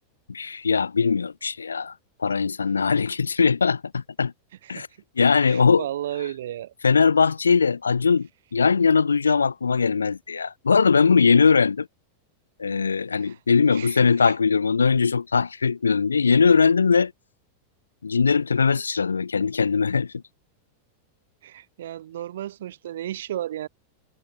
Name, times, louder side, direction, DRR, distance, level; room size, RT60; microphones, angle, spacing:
voice 1, 0.3-1.9 2.2-4.3 4.7-4.9 5.2-5.9 6.8-11.9 12.6-17.1 18.0-20.1, left 5 dB, 75° left, 2.8 m, -20 dB
voice 2, 5.5-6.7 13.1-13.4 13.7-14.3 21.4-23.7, right 12 dB, 60° right, 5.6 m, -34 dB
figure-of-eight pair, 90°, 0 cm